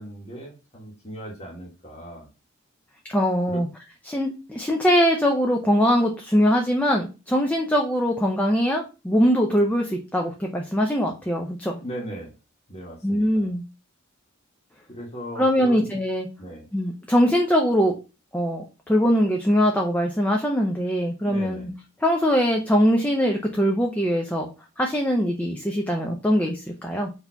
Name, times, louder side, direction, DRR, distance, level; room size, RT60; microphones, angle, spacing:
voice 1, 0.0-2.3 3.5-3.6 11.8-12.3 12.7-13.5 14.9-16.0 16.4-16.7 21.2-21.7, right 1 dB, 35° left, -2 dB, 1.3 m, -38 dB
voice 2, 3.1-3.7 4.1-11.8 13.0-13.6 15.4-16.3 16.7-17.9 18.3-21.7 22.0-24.5 24.8-27.1, equal, 10° left, 1 dB, 0.5 m, -22 dB
4.2 x 2.8 x 4.4 m, 0.30 s
head